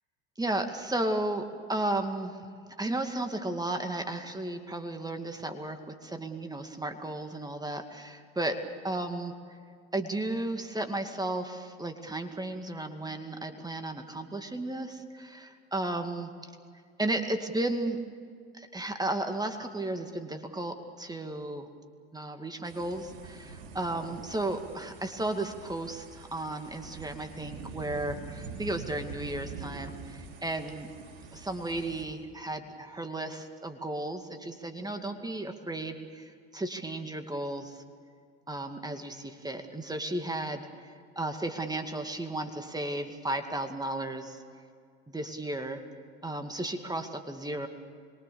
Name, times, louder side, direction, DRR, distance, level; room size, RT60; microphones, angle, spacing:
voice 1, 0.4-2.4 2.8-8.6 8.8-9.3 9.9-16.3 17.0-18.0 18.5-21.6 22.1-30.9 31.3-37.8 38.5-44.4 45.1-45.8 46.2-47.7, right 2 dB, 10° right, 6 dB, 2.2 m, -34 dB
sound 1, 22.6-32.0, right 4 dB, 75° right, 5.7 m, -45 dB
26.0 x 22.5 x 7.0 m, 2.2 s
hypercardioid pair, 75°, 31 cm